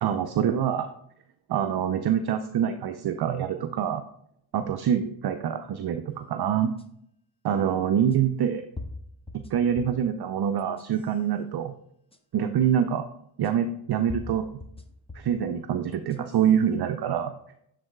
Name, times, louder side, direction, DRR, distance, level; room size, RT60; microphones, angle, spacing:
voice 1, 0.0-0.9 1.5-4.0 4.5-6.7 7.4-8.7 9.3-11.7 12.3-13.1 13.4-14.5 15.1-17.3, right 8 dB, 50° right, 8 dB, 0.5 m, -25 dB
sound 1, 6.8-6.9 8.1-8.2 8.8-10.1 10.6-11.1 12.1-12.2 13.4-13.5 14.1-15.4 15.9-16.5, left 2 dB, 10° left, 0.7 m, -41 dB
10.5 x 4.0 x 2.3 m, 0.73 s
supercardioid pair, 45°, 50 cm